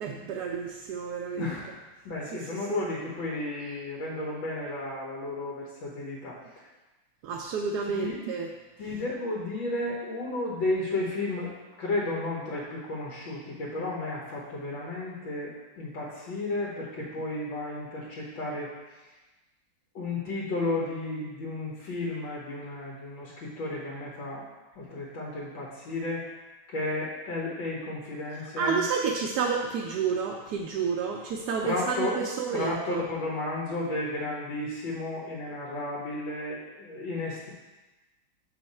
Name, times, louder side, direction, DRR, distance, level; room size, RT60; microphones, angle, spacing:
voice 1, 0.0-1.5 2.3-2.4 7.2-8.5 28.6-32.1 32.4-33.0, right 6 dB, 70° right, 0 dB, 1.1 m, -30 dB
voice 2, 1.4-6.4 7.8-8.2 8.8-11.5 11.8-18.7 20.0-24.4 24.7-26.2 26.7-28.8 31.6-32.2 32.5-37.5, left 2 dB, 85° left, -5 dB, 2.0 m, -33 dB
6.6 x 5.6 x 4.2 m, 1.1 s
omnidirectional pair, 2.0 m